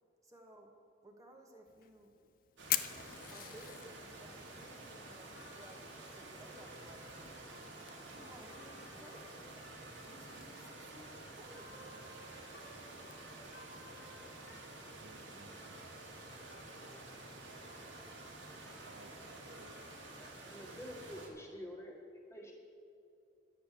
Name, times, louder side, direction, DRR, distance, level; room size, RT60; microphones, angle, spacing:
voice 1, 0.2-0.7 1.0-2.1 3.3-7.5 8.1-9.7 10.1-11.8, right 1 dB, 15° right, 1 dB, 1.4 m, -58 dB
Fire, 1.7-13.2, left 13 dB, 45° left, 0.5 m, -46 dB
sound 1, 2.6-21.3, right 2 dB, 90° right, 2.0 m, -51 dB
Trumpet, 5.3-17.0 17.5-20.5, left 1 dB, 80° left, 1.9 m, -59 dB
voice 2, 15.0-16.0 18.8-19.8, right 3 dB, 65° right, 8 dB, 0.6 m, -59 dB
voice 3, 20.1-22.5, equal, 15° left, -1 dB, 1.7 m, -48 dB
11.5 x 8.1 x 6.7 m, 2.7 s
head